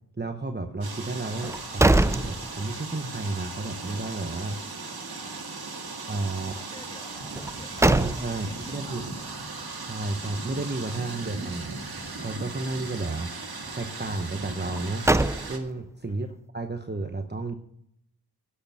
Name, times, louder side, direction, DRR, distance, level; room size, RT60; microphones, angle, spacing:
voice 1, 0.2-4.6 6.1-6.5 7.8-9.0 9.8-11.7 12.1-13.3 13.7-15.1 15.5-16.3 16.5-17.6, right 2 dB, 25° right, 6 dB, 0.9 m, -32 dB
sound 1, 0.8-15.6, right 3 dB, 65° right, 1.8 m, -37 dB
sound 2, 1.4-3.0 3.4-3.5 7.3-8.6 14.6-15.9, right 2 dB, 10° right, 0.3 m, -24 dB
sound 3, 2.7-2.9 3.3-3.5 3.9-4.2 4.6-4.8 5.2-5.5 5.8-6.1 6.6-6.8 7.2-7.5 7.9-8.1 8.5-8.9 9.1-9.4 9.8-10.1 10.4-10.7 11.0-11.3, equal, 40° left, 6.0 m, -55 dB
voice 2, 6.4-8.1 8.4-9.4 16.1-16.4, equal, 10° left, 3 dB, 2.1 m, -50 dB
11.5 x 6.6 x 7.1 m, 0.72 s
cardioid pair, 45°, 40 cm